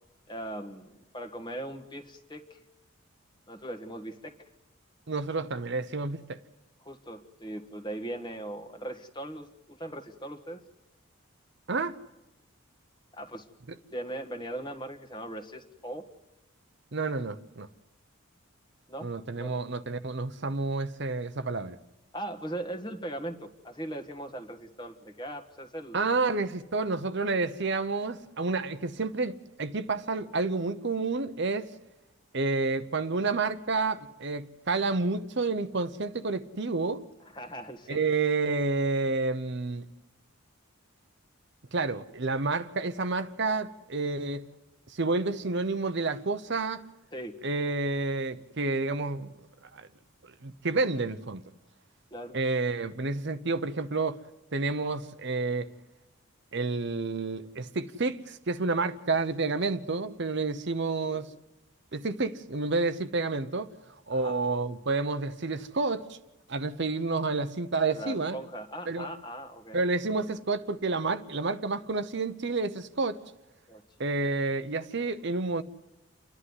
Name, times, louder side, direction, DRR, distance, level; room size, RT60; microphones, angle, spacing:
voice 1, 0.3-2.6 3.5-4.3 6.8-10.6 13.1-13.5 13.9-16.0 18.9-19.1 19.4-19.5 22.1-26.0 37.3-38.0 47.1-47.3 52.1-52.4 61.1-61.4 64.1-64.4 67.9-69.8 73.7-73.8, right 1 dB, 20° left, 1.5 m, -39 dB
voice 2, 5.1-6.4 11.7-12.0 16.9-17.7 19.0-21.8 25.9-31.7 32.3-37.0 37.9-39.8 41.7-44.5 44.9-46.8 47.4-49.3 49.7-49.9 50.4-51.4 52.3-54.2 54.5-55.7 56.5-61.3 61.9-63.7 64.1-66.2 66.5-68.4 68.9-69.1 69.7-73.2 74.0-75.6, right 3 dB, 55° right, 0.9 m, -29 dB
29.0 x 11.5 x 9.7 m
head